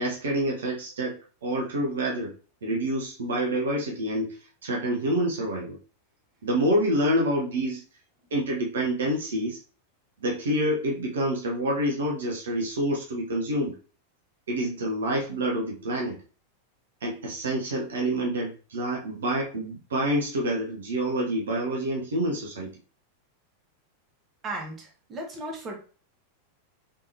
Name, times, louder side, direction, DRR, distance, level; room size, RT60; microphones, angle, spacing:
voice 1, 0.0-2.3 2.6-5.8 6.4-7.8 8.3-9.6 10.2-13.7 14.5-16.2 17.0-22.7, right 1 dB, 65° right, -1 dB, 0.8 m, -27 dB
voice 2, 24.4-25.8, right 2 dB, 25° right, 0 dB, 1.1 m, -35 dB
3.6 x 3.2 x 2.7 m, 0.37 s
figure-of-eight pair, 90°, 0 cm